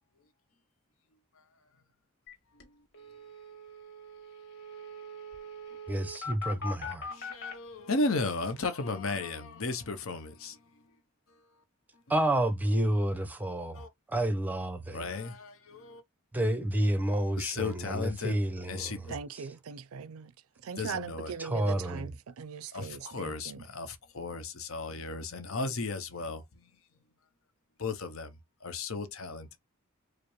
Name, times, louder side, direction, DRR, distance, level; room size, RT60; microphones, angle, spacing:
sound 1, 2.3-2.4 2.6-2.7 2.9-7.5, left 2 dB, 50° left, 1.7 m, -42 dB
voice 1, 5.9-7.1 12.1-15.0 16.3-19.1 21.4-22.1, right 1 dB, 10° right, 0.6 m, -30 dB
voice 2, 7.1-10.6 13.7-13.9 14.9-16.0 17.4-18.3 18.7-19.1 20.8-21.3 22.7-26.4 27.8-29.6, left 3 dB, 70° left, 0.8 m, -35 dB
voice 3, 19.1-20.3 20.6-23.6, right 6 dB, 75° right, 0.4 m, -40 dB
4.9 x 2.0 x 3.1 m
head